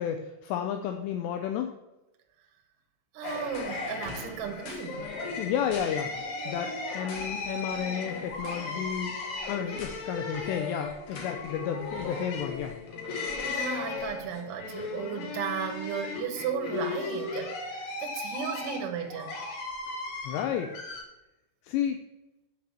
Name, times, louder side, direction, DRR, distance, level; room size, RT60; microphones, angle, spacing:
voice 1, 0.0-1.7 5.4-9.2 9.5-12.8 20.2-20.7 21.6-22.0, left 9 dB, 85° left, 5 dB, 2.5 m, -32 dB
voice 2, 3.1-5.1 13.4-19.4, right 7 dB, 75° right, 5 dB, 1.9 m, -35 dB
sound 1, 3.2-21.0, left 3 dB, 55° left, 2.3 m, -36 dB
9.2 x 5.0 x 7.3 m, 0.97 s
omnidirectional pair, 5.7 m